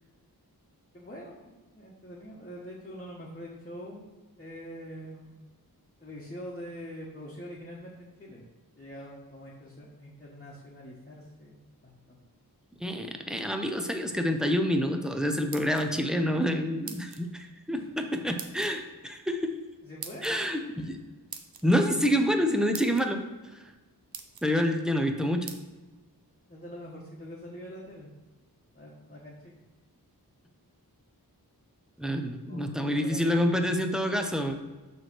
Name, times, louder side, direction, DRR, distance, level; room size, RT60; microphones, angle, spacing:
voice 1, 0.9-4.0 4.4-5.4 6.0-8.4 8.8-11.6 11.8-12.2 17.7-17.9 19.8-20.4 26.5-28.1 28.7-29.6 32.5-33.7, equal, 25° left, -6 dB, 1.2 m, -44 dB
voice 2, 12.8-19.6 20.2-21.0 21.6-23.2 23.5-23.6 24.4-25.5 32.0-34.5, equal, ahead, 4 dB, 0.6 m, -27 dB
sound 1, 15.3-16.1 16.9-17.3 18.4-18.7 20.0-20.3 21.3-21.6 22.4-22.5 22.7-23.1 23.7-23.8 24.1-24.5 25.5-25.6, right 6 dB, 75° right, 0.7 m, -42 dB
6.7 x 3.2 x 6.0 m, 1.2 s
wide cardioid pair, 95°, 37 cm